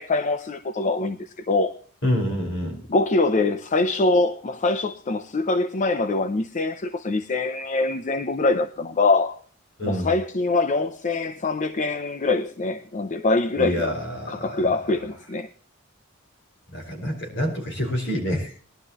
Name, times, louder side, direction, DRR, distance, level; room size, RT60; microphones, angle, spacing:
voice 1, 0.0-1.7 2.9-9.4 9.8-13.9 14.3-15.5, left 3 dB, 35° left, 0.6 m, -24 dB
voice 2, 2.0-2.8 9.8-10.1 13.6-14.7 16.7-18.5, equal, 60° left, 5.2 m, -27 dB
20.5 x 12.0 x 3.0 m
head